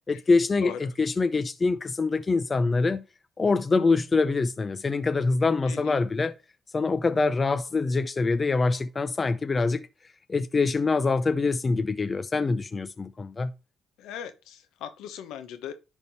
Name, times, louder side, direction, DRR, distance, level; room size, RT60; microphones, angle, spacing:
voice 1, 0.1-3.0 3.4-6.3 6.7-9.9 10.3-13.5, left 3 dB, 30° left, 0.6 m, -25 dB
voice 2, 5.6-6.0 14.0-15.7, left 9 dB, 90° left, 1.0 m, -39 dB
10.5 x 3.6 x 4.2 m
cardioid pair, 90°, 0 cm